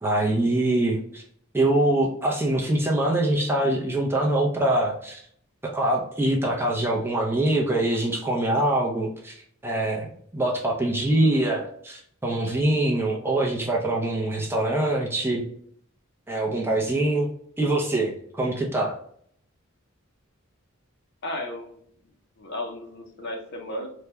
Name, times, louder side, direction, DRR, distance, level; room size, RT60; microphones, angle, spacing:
voice 1, 0.0-1.2 1.5-5.2 5.6-10.1 10.3-15.4 16.3-17.3 17.6-19.0, right 1 dB, 10° right, -1 dB, 0.5 m, -24 dB
voice 2, 21.2-23.9, left 1 dB, 55° left, 3 dB, 0.7 m, -35 dB
3.4 x 2.2 x 2.9 m, 0.63 s
head